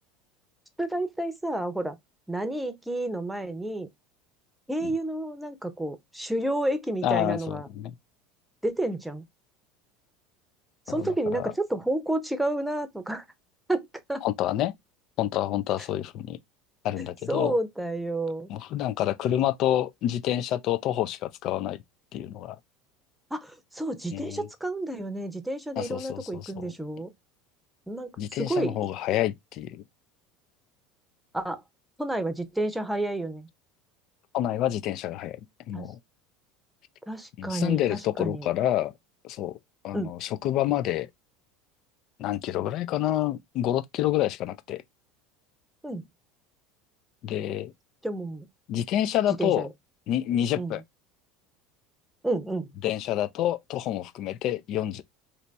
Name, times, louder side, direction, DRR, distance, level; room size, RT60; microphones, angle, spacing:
voice 1, 0.8-2.0 2.3-3.9 4.7-7.7 8.6-9.2 10.9-13.2 13.7-14.2 17.3-18.5 23.3-27.1 27.9-28.1 28.4-28.8 31.3-31.6 32.0-33.5 35.7-35.9 37.1-38.5 39.9-40.1 45.8-46.0 48.0-48.5 49.4-49.7 50.6-50.8 52.2-52.7, right 1 dB, 5° right, 0.8 m, -30 dB
voice 2, 7.0-7.9 10.9-11.5 14.2-14.7 15.2-16.4 16.8-17.6 18.5-21.8 22.1-22.6 24.1-24.5 25.8-26.7 28.2-29.8 34.3-35.4 35.7-36.0 37.4-38.9 39.2-39.6 39.8-41.1 42.2-44.8 47.2-47.7 48.7-49.7 50.1-50.8 52.8-55.0, left 12 dB, 55° left, 0.4 m, -28 dB
3.0 x 2.7 x 3.3 m
hypercardioid pair, 90°, 0 cm